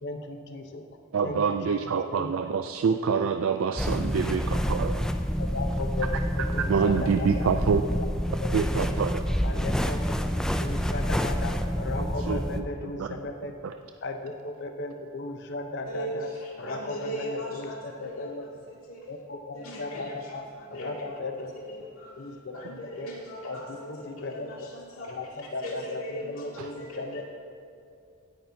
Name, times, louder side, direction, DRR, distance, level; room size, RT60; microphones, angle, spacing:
voice 1, 0.0-0.8 1.2-2.3 4.2-4.3 5.4-6.1 6.4-7.4 7.9-8.1 8.4-8.5 9.4-10.1 10.6-13.7 14.0-16.3 16.6-18.5 19.1-20.4 20.7-21.5 22.2-23.1 23.4-24.7 25.1-27.2, left 2 dB, 55° left, 5 dB, 0.8 m, -36 dB
voice 2, 1.1-2.4 2.8-4.4 4.8-4.9 6.7-7.2 7.5-7.8 8.5-9.1 12.3-12.4, right 6 dB, 70° right, 7 dB, 0.4 m, -25 dB
sound 1, 3.8-12.6, equal, 5° left, 0.4 m, -28 dB
voice 3, 16.4-18.5 18.9-19.0 19.5-21.0 21.7-22.1 22.5-25.1 25.6-27.2, equal, 80° left, -4 dB, 2.5 m, -39 dB
16.0 x 10.0 x 2.8 m, 2.6 s
head